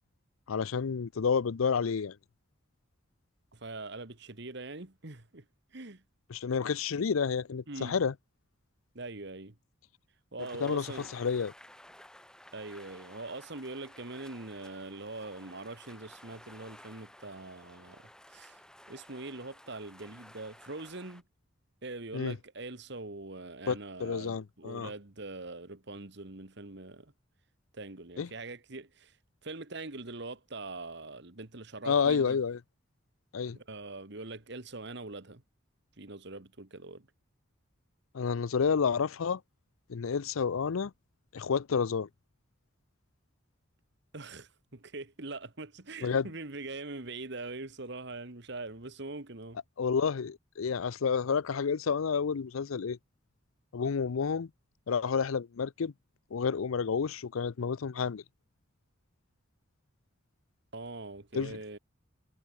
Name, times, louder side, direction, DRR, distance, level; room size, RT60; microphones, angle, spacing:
voice 1, 0.5-2.2 6.3-8.1 10.6-11.5 22.1-22.4 23.7-24.9 28.2-28.3 31.9-32.6 33.3-33.6 38.1-39.4 39.9-40.9 41.3-42.1 46.0-46.3 49.8-53.0 53.7-54.5 54.9-55.9 56.3-58.2 61.3-61.6, left 6 dB, 85° left, 0.5 m, -30 dB
voice 2, 3.5-5.5 5.7-6.0 7.7-8.0 9.0-9.6 10.3-11.1 12.5-18.0 18.3-18.6 18.9-21.2 21.8-27.1 27.7-29.1 29.4-32.4 33.5-35.4 36.0-37.1 44.1-49.6 60.7-61.8, right 2 dB, 55° right, 1.8 m, -43 dB
sound 1, 10.4-21.2, left 1 dB, 5° left, 1.9 m, -54 dB
head